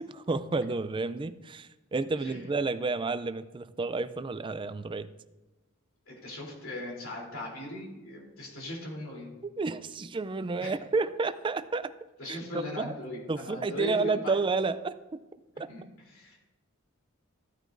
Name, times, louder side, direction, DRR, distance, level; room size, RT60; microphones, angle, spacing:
voice 1, 0.0-5.1 9.4-11.9 12.2-12.9 13.3-15.2 15.6-15.7, right 3 dB, 25° right, 13 dB, 0.4 m, -31 dB
voice 2, 6.1-9.3 10.6-10.7 12.2-14.4 15.7-15.8 16.1-16.4, left 1 dB, 70° left, -2 dB, 3.4 m, -39 dB
14.5 x 9.1 x 2.6 m, 1.1 s
head